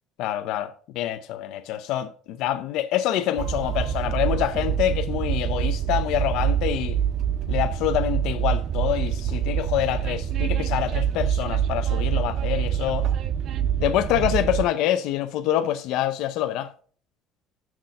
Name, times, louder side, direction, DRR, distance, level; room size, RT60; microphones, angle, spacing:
voice 1, 0.2-7.0 7.5-13.1 13.8-16.7, left 12 dB, 65° left, 0.7 m, -26 dB
Train, 3.4-14.6, right 9 dB, 45° right, 0.5 m, -25 dB
6.4 x 6.1 x 5.3 m
cardioid pair, 170°, 0 cm